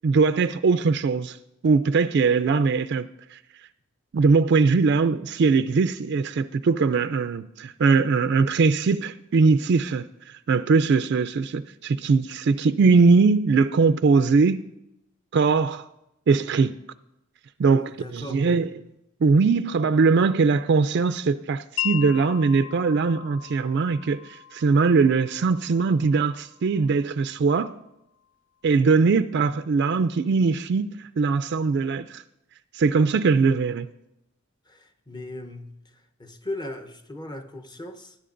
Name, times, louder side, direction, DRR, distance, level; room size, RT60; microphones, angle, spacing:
voice 1, 0.0-1.4 1.6-3.4 4.1-14.6 15.3-15.9 16.3-16.8 17.6-18.7 19.2-27.7 28.6-32.2 32.7-33.9, right 4 dB, 55° right, 0.4 m, -21 dB
voice 2, 17.7-18.7 34.7-38.2, left 1 dB, 20° left, 0.9 m, -38 dB
Wind chime, 21.8-27.9, left 13 dB, 70° left, 0.4 m, -38 dB
20.0 x 10.5 x 2.6 m
head